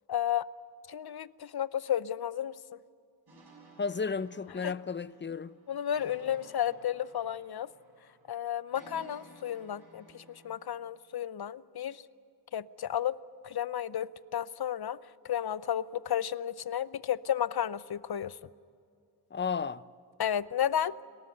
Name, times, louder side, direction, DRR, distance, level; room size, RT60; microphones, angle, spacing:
voice 1, 0.1-0.5 0.9-2.8 4.6-4.7 5.7-7.7 8.3-12.0 12.5-13.2 13.4-15.0 15.2-18.4 20.2-20.9, left 10 dB, 70° left, 0.7 m, -32 dB
sound 1, 3.3-10.5, right 3 dB, 75° right, 6.9 m, -57 dB
voice 2, 3.8-5.5 19.3-19.8, left 5 dB, 30° left, 0.6 m, -33 dB
29.5 x 13.5 x 9.6 m
wide cardioid pair, 65°, 39 cm